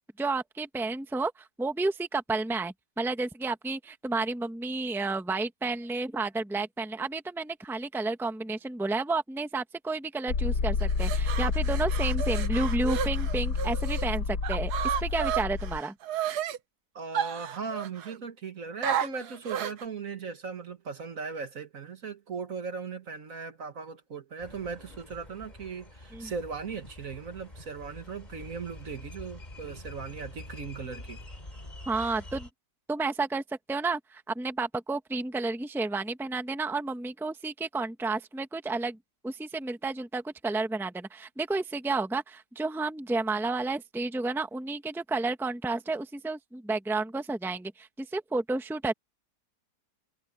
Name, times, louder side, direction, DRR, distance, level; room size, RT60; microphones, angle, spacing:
voice 1, 0.2-14.7 15.0-15.9 26.1-26.3 31.9-32.5 32.9-33.4 33.7-39.0 39.2-48.9, right 3 dB, ahead, 1.2 m, -31 dB
sound 1, 10.3-15.8, left 4 dB, 85° left, 2.3 m, -29 dB
sound 2, 10.8-14.1 14.4-16.6 17.1-18.2 18.8-19.8, right 10 dB, 70° right, 1.4 m, -32 dB
voice 2, 16.9-31.2, right 5 dB, 55° right, 1.9 m, -38 dB
sound 3, 24.4-32.5, left 1 dB, 25° left, 3.8 m, -46 dB
omnidirectional pair, 1.8 m